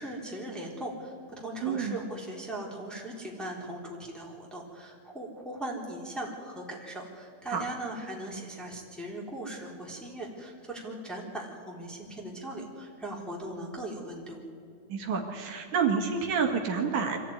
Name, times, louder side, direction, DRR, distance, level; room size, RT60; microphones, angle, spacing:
voice 1, 0.0-14.4, right 1 dB, ahead, -2 dB, 3.5 m, -39 dB
voice 2, 1.6-2.0 7.5-7.6 14.9-17.2, right 6 dB, 70° right, 2 dB, 3.3 m, -28 dB
25.0 x 15.0 x 9.6 m, 2.5 s
omnidirectional pair, 3.7 m